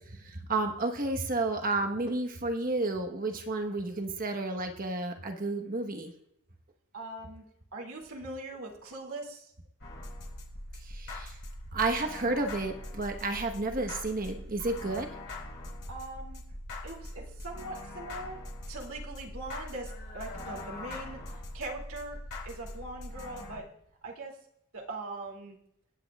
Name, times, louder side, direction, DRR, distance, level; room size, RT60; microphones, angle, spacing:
voice 1, 0.1-6.1 10.8-11.4 11.7-15.1, right 2 dB, 40° right, 4 dB, 1.2 m, -31 dB
voice 2, 6.9-7.4 7.7-9.5 15.9-16.4 16.8-18.4 18.7-22.2 22.4-23.7 24.0-24.4 24.7-25.6, right 2 dB, 70° right, -1 dB, 2.5 m, -41 dB
sound 1, 9.8-23.6, left 1 dB, 55° left, 4.5 m, -42 dB
25.0 x 8.7 x 2.4 m, 0.73 s
head